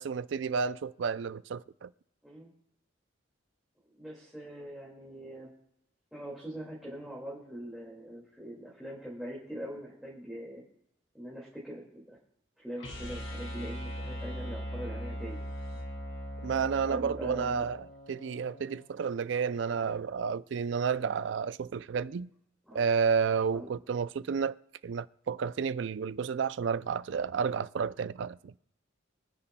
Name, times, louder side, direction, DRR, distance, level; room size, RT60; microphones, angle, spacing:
voice 1, 0.0-1.9 16.4-22.3 22.7-24.6 24.8-28.5, right 6 dB, 70° right, 0.4 m, -31 dB
voice 2, 4.0-5.5 6.1-10.6 11.1-12.2 12.6-15.4 16.8-17.7 19.7-19.8 21.0-21.1 22.7-22.8 23.5-23.7, equal, ahead, 2.1 m, -42 dB
sound 1, 12.8-18.9, equal, 80° left, 2.5 m, -40 dB
23.5 x 9.8 x 2.2 m
head